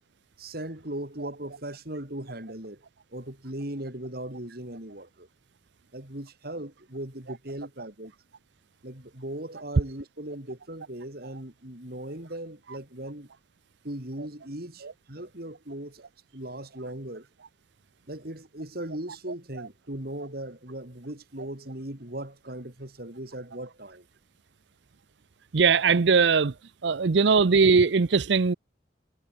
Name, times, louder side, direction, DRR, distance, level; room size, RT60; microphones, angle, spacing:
voice 1, 0.4-2.8 3.1-5.3 5.9-8.1 8.8-13.3 13.8-17.3 18.1-24.1, right 1 dB, 55° right, 3.6 m, -38 dB
voice 2, 25.5-26.5 26.8-28.5, right 5 dB, 70° right, 0.6 m, -20 dB
head